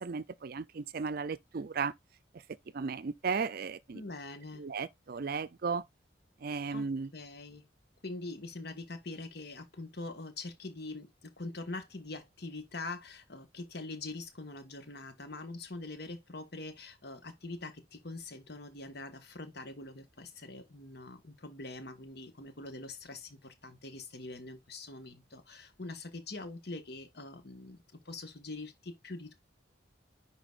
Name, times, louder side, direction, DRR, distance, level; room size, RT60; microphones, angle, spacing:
voice 1, 0.0-1.9 2.7-4.0 4.6-5.8 6.4-7.1, right 5 dB, 55° right, 0.5 m, -35 dB
voice 2, 3.9-4.7 6.7-7.7 8.0-29.3, left 2 dB, 60° left, 1.6 m, -44 dB
10.0 x 4.0 x 2.5 m
head